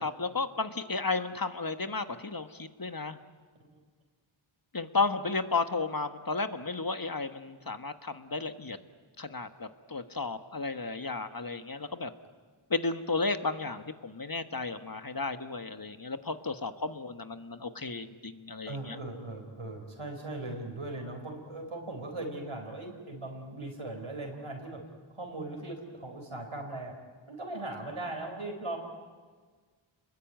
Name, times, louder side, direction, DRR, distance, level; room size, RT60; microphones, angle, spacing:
voice 1, 0.0-3.2 4.7-8.8 9.2-12.1 12.7-19.0, left 3 dB, 45° left, 9 dB, 1.5 m, -33 dB
voice 2, 18.6-24.8 25.1-26.9 27.3-28.8, right 2 dB, 85° right, 2 dB, 4.7 m, -39 dB
30.0 x 21.0 x 9.3 m, 1.5 s
wide cardioid pair, 40°, 48 cm